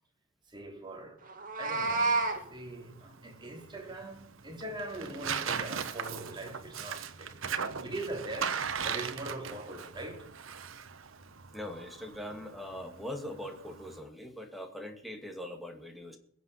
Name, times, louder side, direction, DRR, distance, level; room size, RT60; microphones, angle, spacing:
voice 1, 0.5-1.2 1.6-2.2 2.5-8.6 8.8-10.3, right 2 dB, 25° right, 3.0 m, -41 dB
Meow, 1.3-2.4, right 3 dB, 45° right, 2.4 m, -29 dB
Tearing, 1.8-14.0, right 6 dB, 80° right, 1.1 m, -39 dB
voice 2, 11.5-16.2, left 1 dB, ahead, 2.3 m, -41 dB
21.5 x 8.0 x 5.9 m
head